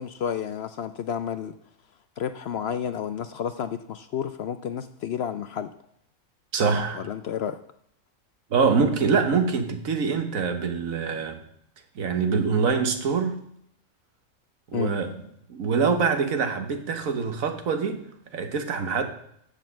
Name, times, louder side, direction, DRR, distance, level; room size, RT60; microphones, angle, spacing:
voice 1, 0.0-1.5 2.2-5.7 6.9-7.6 14.7-14.9, left 8 dB, 65° left, 11 dB, 0.7 m, -31 dB
voice 2, 6.5-7.1 8.5-11.4 11.9-13.4 14.7-15.1 15.5-18.0 18.3-19.0, right 5 dB, 80° right, 7 dB, 1.6 m, -24 dB
7.9 x 6.8 x 7.2 m, 0.71 s
omnidirectional pair, 1.4 m